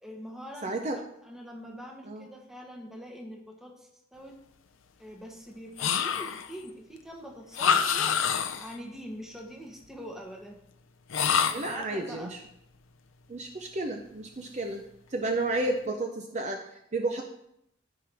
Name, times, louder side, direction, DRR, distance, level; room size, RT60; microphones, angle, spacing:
voice 1, 0.0-4.3 5.0-8.2 8.6-10.6 11.3-12.3, equal, ahead, 0 dB, 1.1 m, -44 dB
voice 2, 0.6-1.0 2.1-2.3 11.5-12.4 13.3-14.8 15.1-17.2, right 2 dB, 35° right, 3 dB, 0.6 m, -32 dB
sound 1, 5.8-6.6 7.5-8.8 11.1-11.8, left 7 dB, 90° left, 0.6 m, -26 dB
13.5 x 4.7 x 3.4 m, 0.79 s
head